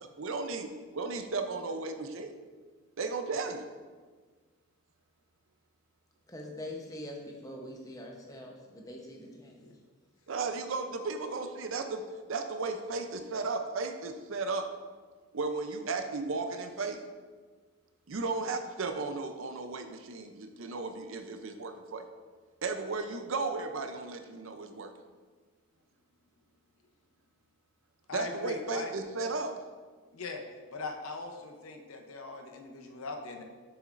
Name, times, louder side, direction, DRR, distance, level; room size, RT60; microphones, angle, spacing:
voice 1, 0.0-2.3 3.0-3.6 10.3-12.0 12.3-14.7 15.3-17.0 18.1-22.0 22.6-24.9 28.1-29.5, right 3 dB, 60° right, 7 dB, 0.5 m, -35 dB
voice 2, 6.3-9.6, left 1 dB, 15° left, 0 dB, 0.8 m, -43 dB
voice 3, 28.1-28.9 30.1-30.4 30.7-33.4, left 3 dB, 70° left, 4 dB, 0.7 m, -40 dB
7.0 x 6.9 x 2.5 m, 1.5 s
head